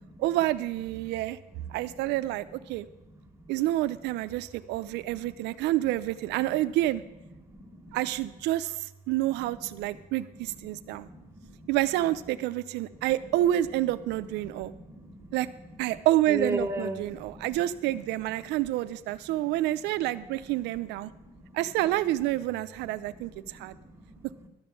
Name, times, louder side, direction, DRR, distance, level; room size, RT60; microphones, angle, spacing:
voice 1, 0.2-1.4 1.7-2.9 3.5-7.0 7.9-11.1 11.7-14.7 15.3-15.5 15.8-21.1 21.5-23.8, right 15 dB, 90° right, 14 dB, 0.6 m, -28 dB
voice 2, 3.1-3.5 5.3-5.4 6.5-6.6 7.5-8.0 9.2-9.8 10.4-11.7 14.5-15.8 16.3-17.9 19.3-19.4 21.0-21.6 23.1-24.5, right 1 dB, 15° right, 3 dB, 1.6 m, -39 dB
12.0 x 7.1 x 7.5 m, 0.96 s
cardioid pair, 110°, 17 cm